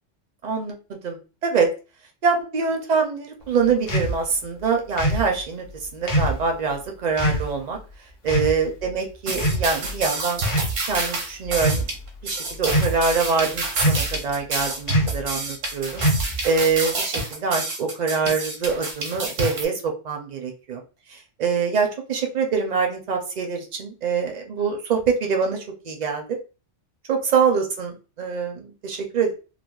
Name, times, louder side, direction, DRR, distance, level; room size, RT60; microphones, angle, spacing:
voice 1, 0.4-1.7 2.2-7.8 8.2-10.4 10.9-11.9 12.2-16.0 16.4-20.8 21.1-26.2 27.1-29.3, right 5 dB, 50° right, 2 dB, 0.5 m, -24 dB
sound 1, 3.9-4.1 5.0-5.3 6.1-6.4 7.2-7.4 8.3-8.6 9.3-9.9 10.4-10.8 11.5-11.8 12.7-13.1 13.8-14.2 14.9-15.2 16.0-16.4, right 1 dB, 40° left, 0.4 m, -22 dB
sound 2, 9.3-19.6, right 2 dB, 80° right, 1.1 m, -29 dB
3.3 x 2.1 x 2.3 m, 0.33 s
omnidirectional pair, 1.3 m